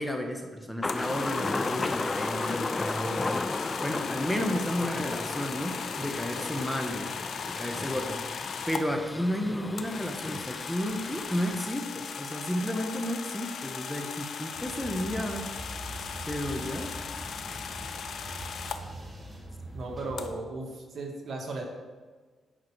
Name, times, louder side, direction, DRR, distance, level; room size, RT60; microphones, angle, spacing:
voice 1, 0.0-3.4 3.8-7.1 7.5-15.5 16.3-17.0, equal, 5° left, 3 dB, 1.2 m, -32 dB
sound 1, 0.8-8.8 9.8-18.8 20.2-20.3, left 6 dB, 65° left, 0.7 m, -38 dB
Thunder, 0.8-11.7, left 2 dB, 25° left, 0.4 m, -35 dB
sound 2, 14.5-20.3, right 1 dB, 20° right, 1.5 m, -42 dB
voice 2, 19.7-21.6, right 2 dB, 55° right, 1 dB, 1.9 m, -36 dB
9.8 x 5.9 x 4.7 m, 1.4 s
cardioid pair, 70°, 0 cm